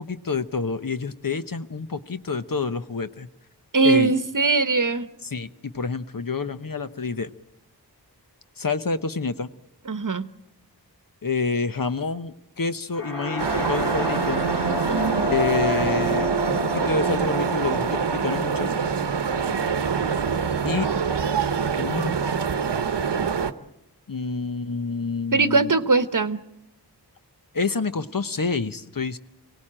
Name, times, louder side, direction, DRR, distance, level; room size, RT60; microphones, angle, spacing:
voice 1, 0.0-3.3 3.8-4.1 5.2-7.3 8.6-9.5 11.2-14.4 15.2-18.7 20.6-20.9 21.8-22.2 24.1-25.7 27.5-29.2, left 4 dB, 50° left, 10 dB, 1.0 m, -28 dB
voice 2, 3.7-5.1 9.9-10.3 14.9-15.3 25.3-26.4, right 4 dB, 50° right, 12 dB, 1.1 m, -21 dB
sound 1, 12.9-20.8, equal, 80° left, 3.7 m, -30 dB
sound 2, 13.4-23.5, right 6 dB, 75° right, 1.0 m, -25 dB
24.5 x 17.5 x 8.8 m, 0.88 s
wide cardioid pair, 45°, 42 cm